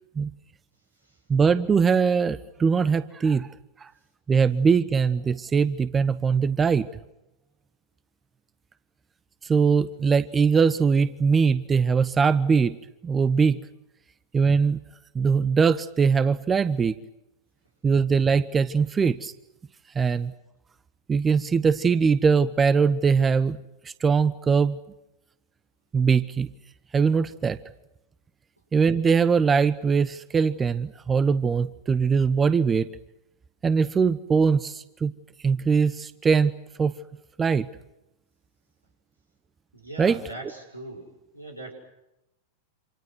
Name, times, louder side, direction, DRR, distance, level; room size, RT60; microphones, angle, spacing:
voice 1, 1.3-3.5 3.8-3.9 4.3-6.9 9.4-12.8 13.0-13.6 14.3-14.8 15.1-16.9 17.8-19.3 19.9-20.3 21.1-24.8 25.9-26.5 26.9-27.6 28.7-32.9 33.6-35.1 35.4-36.5 36.8-36.9 37.4-37.7 40.0-40.2, right 5 dB, 20° right, 16 dB, 0.9 m, -21 dB
voice 2, 39.7-41.1 41.3-41.7, right 2 dB, 85° right, 1 dB, 6.7 m, -39 dB
28.0 x 27.0 x 6.3 m, 0.89 s
figure-of-eight pair, 90°, 0 cm